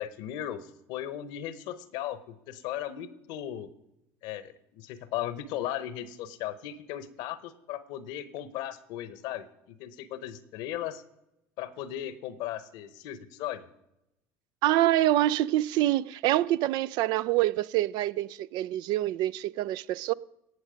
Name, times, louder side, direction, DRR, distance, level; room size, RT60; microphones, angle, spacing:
voice 1, 0.0-3.7 4.2-11.0 11.6-13.7, left 11 dB, 70° left, 0.9 m, -37 dB
voice 2, 14.6-20.1, right 14 dB, 65° right, 0.3 m, -26 dB
17.5 x 6.4 x 5.1 m
hypercardioid pair, 65°, 8 cm